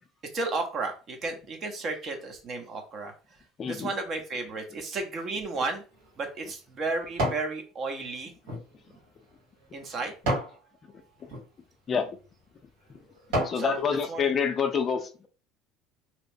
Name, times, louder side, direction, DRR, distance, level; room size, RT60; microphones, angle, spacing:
voice 1, 0.3-3.1 3.7-5.8 6.2-8.3 9.7-10.1 13.6-13.8 14.1-14.3, right 3 dB, 45° right, 4 dB, 0.8 m, -33 dB
voice 2, 3.6-3.9 11.9-12.1 13.4-15.3, left 6 dB, 40° left, 7 dB, 0.5 m, -27 dB
sound 1, 5.7-7.5 8.0-10.6 11.2-11.4 12.1-12.3 12.8-13.7 14.1-14.2, right 1 dB, 80° right, 1.4 m, -33 dB
2.9 x 2.0 x 2.6 m, 0.34 s
hypercardioid pair, 80°, 0 cm